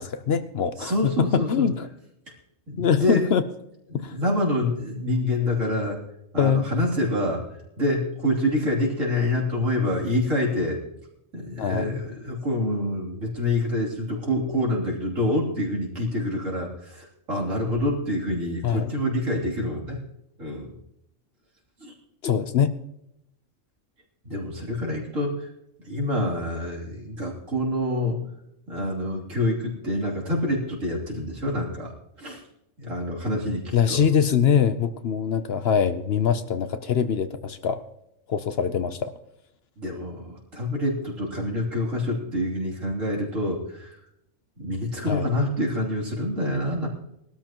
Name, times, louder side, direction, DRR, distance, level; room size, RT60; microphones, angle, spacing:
voice 1, 0.0-1.9 2.8-3.4 3.9-4.1 6.4-6.7 11.6-12.0 18.6-18.9 22.2-22.7 33.7-37.8 38.3-39.1 45.1-45.3, left 7 dB, 60° left, 11 dB, 0.9 m, -23 dB
voice 2, 0.8-1.7 2.7-3.2 3.9-6.0 6.3-7.4 7.8-10.8 11.3-20.0 20.4-20.7 21.8-21.9 24.2-25.5 25.8-28.3 28.7-31.9 32.2-32.4 32.8-34.0 39.8-44.0 44.6-46.9, left 1 dB, 80° right, -3 dB, 3.6 m, -26 dB
20.0 x 12.5 x 3.0 m, 0.80 s
omnidirectional pair, 1.3 m